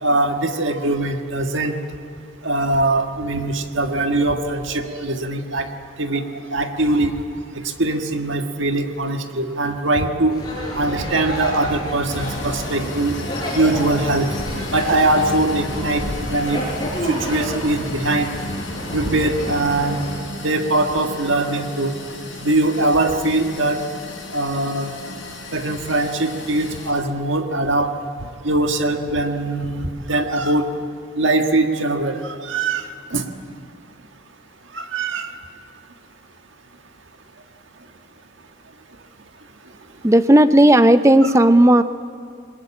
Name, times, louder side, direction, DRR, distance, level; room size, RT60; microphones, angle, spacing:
voice 1, 0.0-1.7 2.4-5.7 6.0-6.2 6.5-7.1 7.6-10.3 10.8-13.2 13.5-14.3 14.7-16.6 17.0-18.3 18.9-20.0 20.4-21.9 22.4-23.8 24.3-24.9 25.5-27.9 28.4-30.7 31.2-33.2 34.7-35.3 41.2-41.3, right 2 dB, 70° right, 5 dB, 1.6 m, -21 dB
sound 1, 10.3-20.2, equal, 20° left, 5.7 m, -29 dB
sound 2, 12.1-26.9, left 2 dB, 65° left, 6.1 m, -35 dB
voice 2, 40.0-41.8, right 1 dB, 15° right, 12 dB, 0.5 m, -12 dB
21.5 x 20.0 x 8.9 m, 2.3 s
head